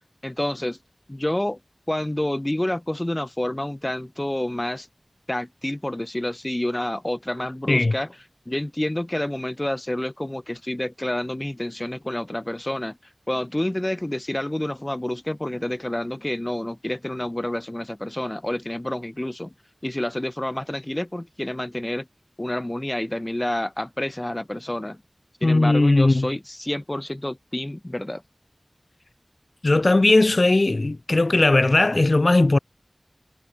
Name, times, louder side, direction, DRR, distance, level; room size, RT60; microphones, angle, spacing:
voice 1, 0.2-0.8 1.1-1.6 1.9-4.9 5.3-8.1 8.5-13.0 13.3-19.5 19.8-22.1 22.4-25.0 25.4-28.2, left 1 dB, 25° left, 3.1 m, -28 dB
voice 2, 25.4-26.3 29.6-32.6, left 2 dB, 60° left, 2.9 m, -18 dB
wide cardioid pair, 50°, 0 cm